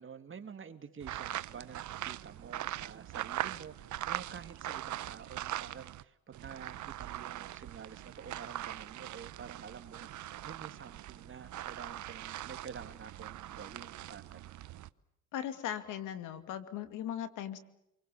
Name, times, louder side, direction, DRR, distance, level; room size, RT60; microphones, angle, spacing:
voice 1, 0.0-14.5, right 6 dB, 40° right, 8 dB, 2.6 m, -49 dB
sound 1, 1.0-6.0 6.3-14.9, right 14 dB, 75° right, 0.9 m, -41 dB
voice 2, 15.3-17.6, left 10 dB, 90° left, 10 dB, 2.5 m, -38 dB
28.0 x 25.0 x 7.0 m, 0.81 s
cardioid pair, 90°, 30 cm